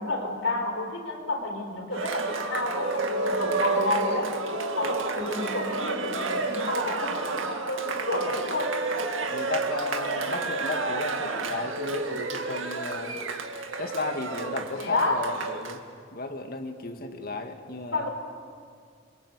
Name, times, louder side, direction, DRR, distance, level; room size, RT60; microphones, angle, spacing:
voice 1, 0.0-4.3 4.8-8.8 14.8-15.2 17.9-18.1, left 2 dB, 85° left, 3 dB, 4.5 m, -30 dB
Cheering, 1.9-15.8, right 3 dB, 90° right, 2.2 m, -30 dB
voice 2, 9.3-13.2 13.8-15.8 16.1-18.1, left 2 dB, 50° left, 5 dB, 2.1 m, -34 dB
28.0 x 23.5 x 8.2 m, 2.2 s
head